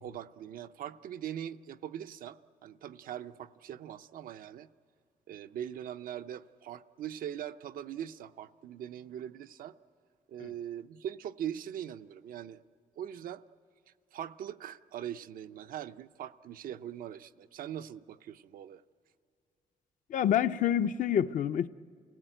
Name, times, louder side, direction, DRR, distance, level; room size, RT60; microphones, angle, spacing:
voice 1, 0.0-4.7 5.3-9.8 10.3-12.6 13.0-13.4 13.9-18.8, right 10 dB, 85° right, 0.6 m, -41 dB
voice 2, 20.1-21.7, left 10 dB, 65° left, 0.6 m, -27 dB
28.5 x 16.5 x 9.1 m
cardioid pair, 130°, 14 cm